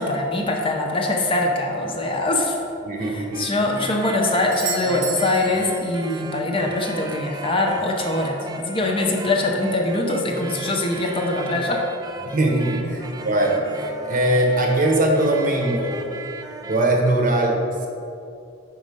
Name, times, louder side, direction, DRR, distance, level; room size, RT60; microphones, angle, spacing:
voice 1, 0.0-2.5 3.1-11.9 12.8-13.0, left 2 dB, 25° left, 1 dB, 0.6 m, -23 dB
sound 1, 2.8-16.8, right 3 dB, 20° right, 0.3 m, -37 dB
voice 2, 2.8-3.4 12.2-16.0 16.7-17.9, right 1 dB, 40° right, 1 dB, 0.8 m, -21 dB
Doorbell, 4.5-6.4 10.4-10.5, right 6 dB, 70° right, 0.6 m, -33 dB
5.1 x 4.7 x 5.2 m, 2.6 s
head